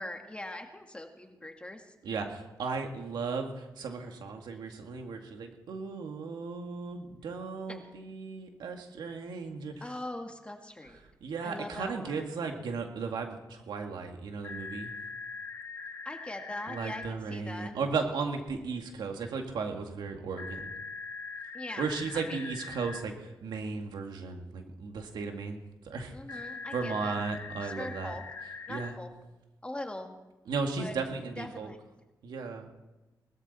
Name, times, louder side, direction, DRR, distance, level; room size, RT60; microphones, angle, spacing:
voice 1, 0.0-1.9 9.8-11.0 11.4-12.3 16.1-17.8 21.5-21.9 22.1-22.4 23.0-23.1 26.1-27.2 27.6-28.2 28.7-29.1 29.6-30.1 30.8-31.0 31.4-31.8, left 1 dB, 15° left, 4 dB, 1.9 m, -41 dB
voice 2, 2.0-9.9 11.2-14.9 16.7-20.7 21.8-26.5 26.7-28.1 28.7-28.9 30.5-31.7 32.2-32.7, right 4 dB, 90° right, 4 dB, 2.0 m, -36 dB
sound 1, 14.4-17.1 20.4-23.0 26.3-28.9, left 4 dB, 40° left, 1.6 m, -42 dB
20.0 x 13.5 x 4.2 m, 1.1 s
cardioid pair, 90°, 7 cm